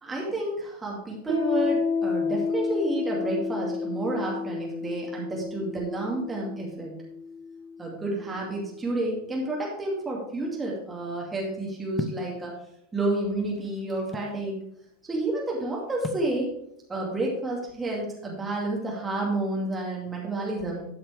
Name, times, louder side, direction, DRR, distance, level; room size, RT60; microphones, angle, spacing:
voice 1, 0.0-6.9 7.8-12.5 12.9-14.6 15.0-16.5 16.9-20.9, right 2 dB, 15° right, -3 dB, 2.4 m, -30 dB
Piano, 1.3-8.5, left 5 dB, 50° left, 3.9 m, -31 dB
sound 1, 12.0-12.3 13.2-14.4 16.0-16.3, left 3 dB, 15° left, 0.8 m, -34 dB
12.5 x 5.9 x 3.4 m, 0.79 s
figure-of-eight pair, 90°, 0 cm